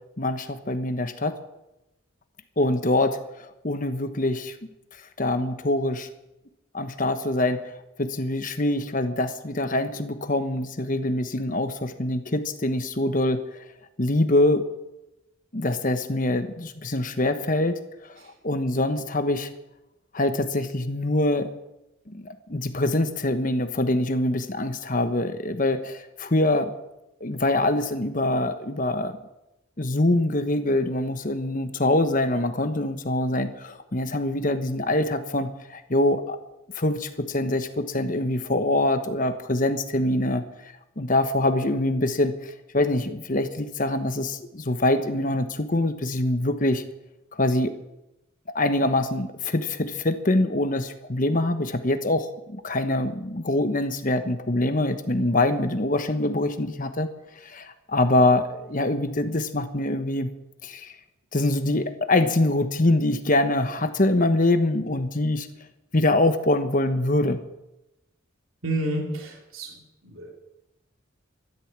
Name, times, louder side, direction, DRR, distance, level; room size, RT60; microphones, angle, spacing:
voice 1, 0.2-1.3 2.6-3.2 3.6-4.5 5.2-6.1 6.7-7.6 8.0-13.4 14.0-14.6 15.5-17.7 18.4-19.5 20.1-21.5 22.1-26.7 27.2-29.2 29.8-36.4 36.7-40.4 41.0-46.8 47.3-47.7 48.5-57.1 57.4-60.3 60.6-60.9 61.3-65.5 65.9-67.4, left 2 dB, 40° left, 9 dB, 1.2 m, -24 dB
voice 2, 68.6-69.7 70.0-70.3, right 1 dB, 75° right, -1 dB, 3.3 m, -29 dB
13.5 x 12.5 x 7.4 m, 0.92 s
head